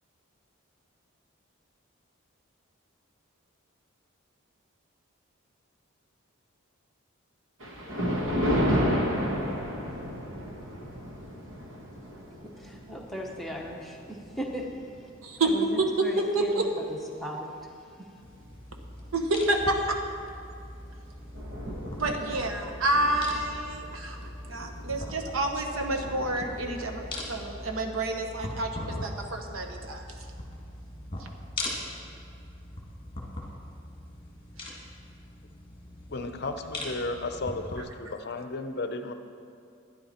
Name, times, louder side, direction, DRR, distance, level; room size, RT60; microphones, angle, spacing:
Thunder, 7.6-16.1 16.7-16.9 17.6-17.7 18.1-18.2 20.3-20.5 20.9-21.0 21.1-27.1, equal, 65° right, 1.4 m, -33 dB
voice 1, 12.4-14.7 14.9-15.0 15.4-17.5 18.0-18.1, equal, ahead, -1 dB, 0.9 m, -37 dB
voice 2, 16.3-16.7 19.1-20.0 22.0-24.2 24.5-27.0 27.3-30.0, right 2 dB, 80° right, 4 dB, 1.1 m, -28 dB
sound 1, 18.2-37.8, left 1 dB, 25° left, 1.6 m, -41 dB
voice 3, 36.1-39.1, left 2 dB, 50° left, 8 dB, 0.6 m, -34 dB
12.5 x 9.8 x 4.3 m, 2.4 s
head